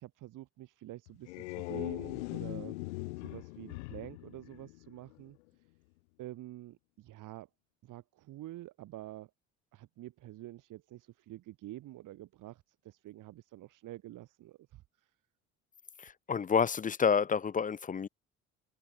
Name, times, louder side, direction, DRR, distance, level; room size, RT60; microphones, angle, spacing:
voice 1, 0.0-2.8 3.2-5.4 6.2-7.5 7.8-9.3 9.7-15.1, right 15 dB, 60° right, 3.8 m, -48 dB
sound 1, 1.1-5.3, left 23 dB, 75° left, 1.8 m, -40 dB
voice 2, 16.0-18.1, left 6 dB, 25° left, 0.6 m, -29 dB
hypercardioid pair, 55°, 35 cm